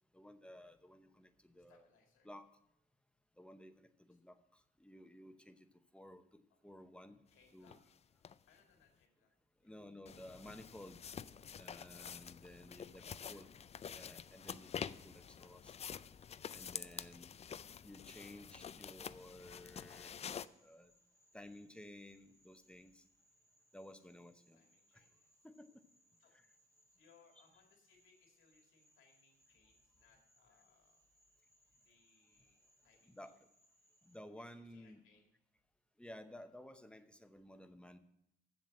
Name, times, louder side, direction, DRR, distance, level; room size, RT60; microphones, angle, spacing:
voice 1, 0.1-1.9 2.2-2.5 3.4-5.7 5.9-7.2 7.5-7.8 9.6-11.0 11.6-13.5 13.9-15.7 16.5-17.3 17.8-20.9 21.3-23.0 23.7-24.6 25.4-25.7 26.3-26.4 33.0-33.4 34.0-35.0 36.0-38.0, left 1 dB, 5° left, 9 dB, 0.8 m, -55 dB
voice 2, 1.7-2.3 7.3-7.8 8.5-9.3 9.6-9.7 12.6-13.7 24.5-25.3 26.2-26.3 26.9-31.0 31.8-33.3 34.4-35.3, left 5 dB, 90° left, 2 dB, 2.2 m, -71 dB
sound 1, 7.7-7.8 8.2-8.4 10.0-20.5, left 7 dB, 35° left, 0.3 m, -48 dB
Frog, 20.3-34.2, equal, 15° right, 1.6 m, -74 dB
7.5 x 7.4 x 7.5 m, 0.80 s
cardioid pair, 90°, 20 cm